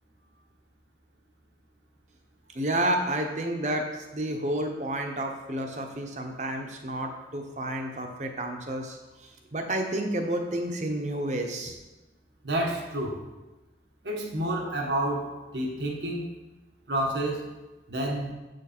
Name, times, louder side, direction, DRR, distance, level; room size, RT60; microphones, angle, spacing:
voice 1, 2.5-11.8, right 1 dB, 40° right, 4 dB, 1.0 m, -30 dB
voice 2, 12.4-13.2 14.0-16.3 16.9-17.5 17.9-18.3, right 1 dB, 80° right, 0 dB, 1.5 m, -29 dB
7.8 x 6.5 x 4.4 m, 1.1 s
head